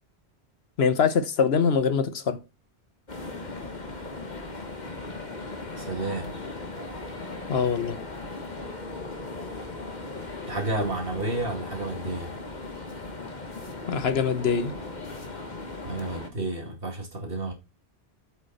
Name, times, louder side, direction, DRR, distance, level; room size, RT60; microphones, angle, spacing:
voice 1, 0.8-2.4 7.5-8.0 13.9-14.8, left 6 dB, 70° left, 1.2 m, -23 dB
sound 1, 3.1-16.3, left 3 dB, 45° left, 1.5 m, -38 dB
voice 2, 5.8-6.3 10.5-12.4 15.8-17.5, right 2 dB, 60° right, 2.5 m, -31 dB
7.9 x 6.1 x 4.1 m
omnidirectional pair, 1.1 m